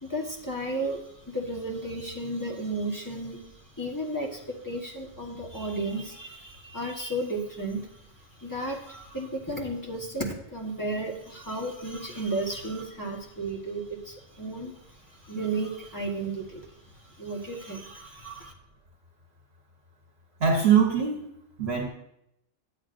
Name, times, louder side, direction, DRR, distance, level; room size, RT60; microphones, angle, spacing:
voice 1, 0.0-8.0 8.4-16.6 17.0-18.5, right 2 dB, 15° left, -1 dB, 1.3 m, -33 dB
voice 2, 20.4-21.3 21.6-21.9, right 7 dB, 55° right, 0 dB, 1.3 m, -22 dB
10.0 x 8.6 x 2.6 m, 0.76 s
omnidirectional pair, 1.3 m